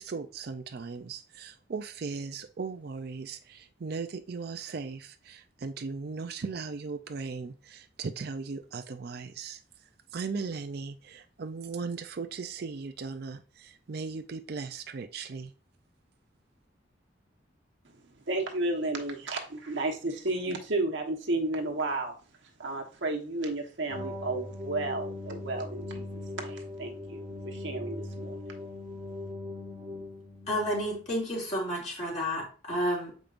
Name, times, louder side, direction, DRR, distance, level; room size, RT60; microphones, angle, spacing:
voice 1, 0.0-15.5, right 4 dB, 55° right, 0.4 m, -38 dB
voice 2, 18.3-22.1 22.6-26.1 26.3-28.3, right 2 dB, 75° right, 1.2 m, -32 dB
sound 1, 23.9-31.0, left 2 dB, 25° right, 1.1 m, -40 dB
voice 3, 30.5-33.1, equal, 40° left, 2.5 m, -31 dB
7.3 x 5.2 x 2.5 m
head